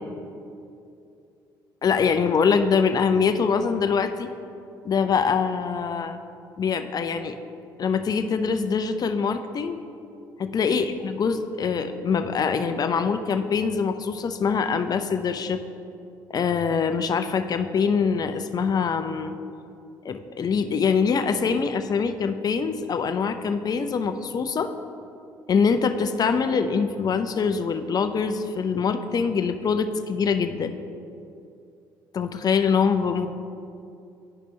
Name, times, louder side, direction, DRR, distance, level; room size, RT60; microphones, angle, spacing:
voice 1, 1.8-4.3 4.8-6.2 6.6-7.4 7.8-9.8 10.4-15.6 16.3-19.4 20.0-24.7 25.5-30.8 32.1-33.3, left 5 dB, 40° left, 9 dB, 0.5 m, -24 dB
10.5 x 5.1 x 3.2 m, 2.5 s
hypercardioid pair, 60°, 10 cm